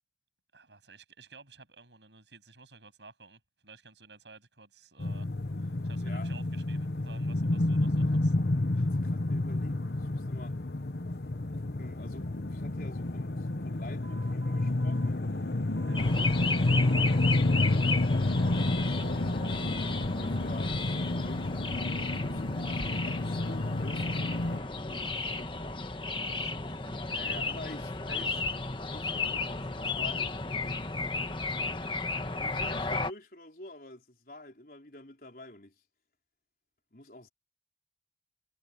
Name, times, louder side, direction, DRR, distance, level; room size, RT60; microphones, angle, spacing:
voice 1, 0.5-5.3 5.6-8.3 8.7-8.9 15.8-16.1 26.2-27.0, right 4 dB, 85° right, 7.9 m, -54 dB
sound 1, 5.0-24.6, left 2 dB, 70° left, 1.1 m, -29 dB
voice 2, 8.8-10.6 11.5-15.3 16.5-19.6 20.2-21.5 22.2-25.9 27.1-28.4 28.8-31.0 32.2-35.7 36.9-37.3, left 1 dB, 55° left, 4.6 m, -48 dB
sound 2, 14.0-16.5 16.7-17.8 18.2-19.1 19.4-20.5 20.8-21.8 22.1-23.4 23.8-25.9, right 3 dB, 35° right, 5.6 m, -57 dB
sound 3, 16.0-33.1, left 3 dB, 30° left, 1.3 m, -34 dB
head